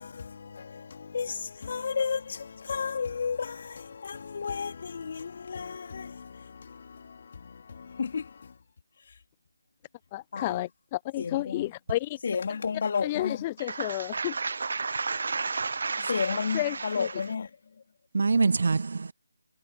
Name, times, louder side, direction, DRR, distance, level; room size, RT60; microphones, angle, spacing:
voice 1, 0.0-8.6 9.0-9.2 10.3-10.7 11.2-11.7 12.2-13.4 16.0-17.8, left 5 dB, 40° left, 3.2 m, -33 dB
voice 2, 10.1-12.2 13.0-14.4 16.5-17.1, left 16 dB, 20° left, 0.8 m, -31 dB
voice 3, 13.7-16.4 18.1-19.1, right 4 dB, 50° right, 0.9 m, -28 dB
figure-of-eight pair, 155°, 0 cm